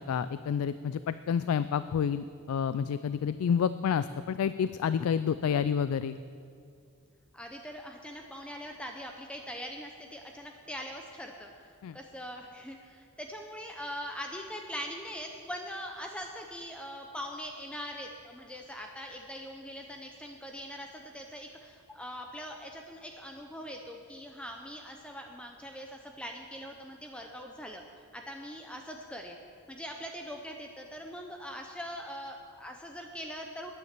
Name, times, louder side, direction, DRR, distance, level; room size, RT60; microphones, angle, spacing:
voice 1, 0.0-6.2 11.8-12.0, left 7 dB, 85° left, 13 dB, 0.3 m, -29 dB
voice 2, 7.3-27.8 28.1-29.4 29.7-33.7, equal, 5° left, 2 dB, 0.5 m, -42 dB
10.5 x 9.4 x 7.4 m, 2.3 s
head